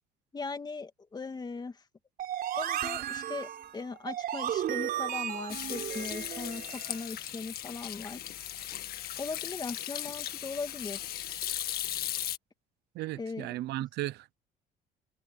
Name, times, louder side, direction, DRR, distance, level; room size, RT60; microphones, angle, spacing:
voice 1, 0.3-1.8 2.6-3.5 3.7-8.2 9.2-11.1 13.1-13.6, left 4 dB, 25° left, 2.3 m, -39 dB
sound 1, 2.2-7.1, right 11 dB, 60° right, 4.7 m, -34 dB
Hands / Sink (filling or washing), 5.5-12.4, left 12 dB, 65° left, 1.8 m, -37 dB
voice 2, 13.0-14.4, right 16 dB, 80° right, 0.8 m, -35 dB
cardioid pair, 110°, 17 cm